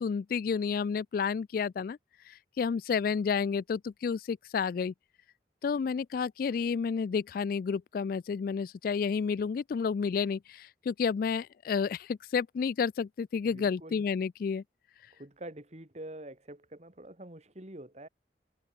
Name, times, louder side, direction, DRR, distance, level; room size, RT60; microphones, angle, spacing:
voice 1, 0.0-2.0 2.3-4.9 5.6-14.6, left 6 dB, 55° left, 0.3 m, -30 dB
voice 2, 13.4-14.0 15.1-18.1, right 1 dB, 40° right, 2.5 m, -46 dB
head